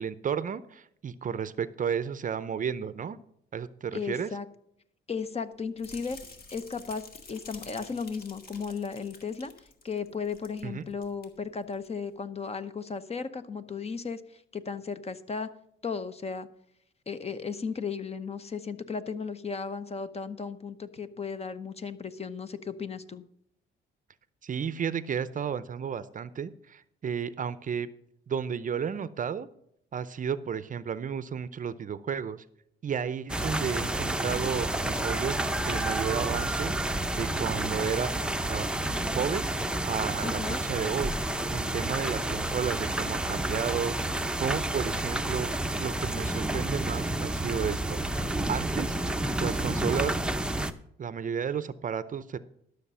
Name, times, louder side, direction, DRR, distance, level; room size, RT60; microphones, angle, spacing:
voice 1, 0.0-3.2 3.5-4.3 10.6-10.9 24.4-27.9 28.3-29.5 29.9-32.4 32.8-36.8 37.2-38.1 38.5-38.7 39.1-41.1 41.5-43.9 44.4-45.5 45.8-49.0 49.4-50.2 50.6-50.7 51.0-52.4, right 7 dB, 40° right, 15 dB, 0.6 m, -32 dB
voice 2, 3.9-4.5 5.1-6.2 6.5-9.5 9.8-15.5 15.8-16.5 17.1-23.2 40.2-40.6, left 5 dB, 30° left, 12 dB, 0.9 m, -35 dB
sound 1, 5.8-10.6 10.9-11.3 11.7-11.9, left 3 dB, 50° left, 2.1 m, -49 dB
sound 2, 33.3-50.7, right 1 dB, 5° right, 0.7 m, -30 dB
12.5 x 6.5 x 5.5 m, 0.73 s
cardioid pair, 90°, 20 cm